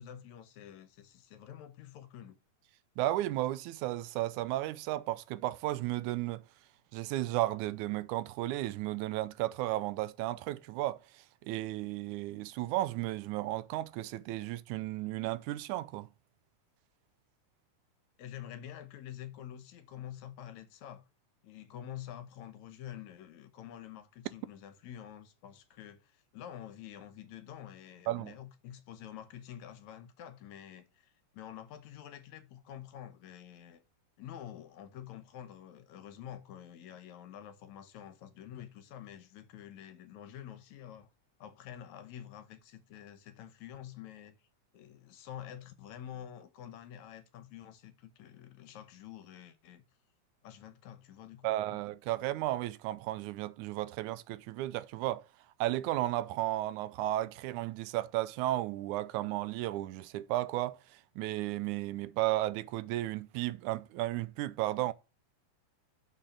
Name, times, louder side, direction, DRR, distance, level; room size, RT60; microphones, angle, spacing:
voice 1, 0.0-2.4 18.2-21.0 21.4-33.8 34.2-41.1 41.4-44.4 44.7-49.8 50.4-51.8, left 10 dB, 75° left, 2.2 m, -48 dB
voice 2, 3.0-6.4 6.9-16.1 28.1-28.3 51.4-55.2 55.6-64.9, right 16 dB, 85° right, 2.0 m, -34 dB
6.9 x 5.5 x 7.1 m
omnidirectional pair, 3.4 m